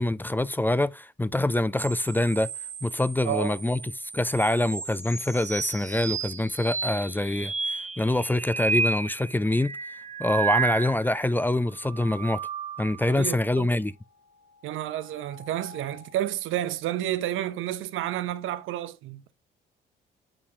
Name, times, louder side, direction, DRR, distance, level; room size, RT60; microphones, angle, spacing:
voice 1, 0.0-2.5 2.8-3.8 4.1-9.7 10.2-12.4 12.8-13.9, left 1 dB, 10° left, 0.4 m, -25 dB
sound 1, 1.8-11.3 11.8-13.2 15.0-16.1, right 5 dB, 35° right, 1.2 m, -33 dB
voice 2, 3.2-3.6 13.1-13.7 14.6-19.3, right 12 dB, 85° right, 0.7 m, -30 dB
8.8 x 4.8 x 2.7 m
cardioid pair, 90°, 20 cm